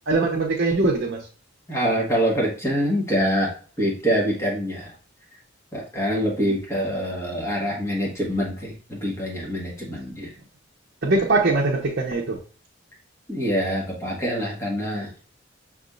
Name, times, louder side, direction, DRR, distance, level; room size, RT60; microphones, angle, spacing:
voice 1, 0.1-1.2 11.0-12.4, right 3 dB, 55° right, 0.8 m, -21 dB
voice 2, 1.7-3.5 3.8-4.9 5.7-10.3 13.3-15.1, equal, 15° left, 1.4 m, -25 dB
6.1 x 3.5 x 2.4 m
head